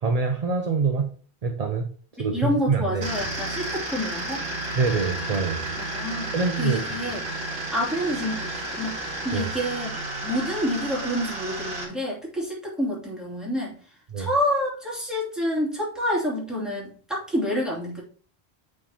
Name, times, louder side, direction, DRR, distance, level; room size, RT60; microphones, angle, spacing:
voice 1, 0.0-1.1 1.4-1.8 2.2-3.0 4.7-5.7 6.3-6.8 9.3-9.5 14.1-14.3, right 4 dB, 40° right, 5 dB, 0.7 m, -25 dB
voice 2, 2.2-4.5 5.8-6.3 6.6-7.2 7.7-13.8 14.2-18.0, equal, ahead, -5 dB, 2.8 m, -28 dB
sound 1, 3.0-11.8, right 1 dB, 65° right, 2.1 m, -32 dB
8.6 x 4.5 x 2.9 m, 0.43 s
omnidirectional pair, 1.1 m